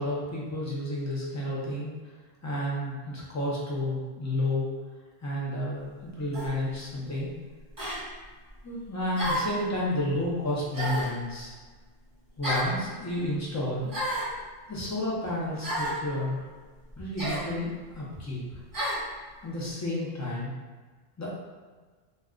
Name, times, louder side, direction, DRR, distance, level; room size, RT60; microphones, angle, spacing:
voice 1, 0.0-1.9 2.4-4.7 5.2-7.4 8.6-11.5 12.4-13.9 14.7-16.4 17.0-18.4 19.4-20.5 21.2-21.4, left 1 dB, 25° left, -6 dB, 0.4 m, -31 dB
sound 1, 6.3-6.6 7.8-8.0 9.2-9.6 10.7-11.2 12.4-12.7 13.9-14.3 15.6-16.0 17.2-17.5 18.7-19.0, equal, 20° right, 0.7 m, -30 dB
2.3 x 2.2 x 3.6 m, 1.4 s
omnidirectional pair, 1.2 m